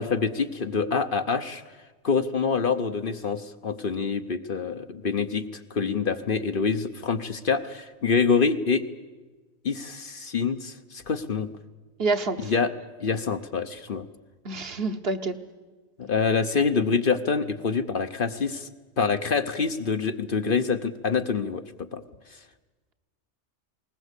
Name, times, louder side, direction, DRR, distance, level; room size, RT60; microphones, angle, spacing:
voice 1, 0.0-1.6 2.0-8.8 9.6-11.5 12.4-12.7 13.0-14.1 16.0-18.7 19.0-22.0, left 5 dB, 50° left, 9 dB, 0.9 m, -26 dB
voice 2, 12.0-12.5 14.4-15.4, right 3 dB, 55° right, 8 dB, 1.3 m, -27 dB
20.5 x 19.5 x 8.2 m, 1.3 s
omnidirectional pair, 1.3 m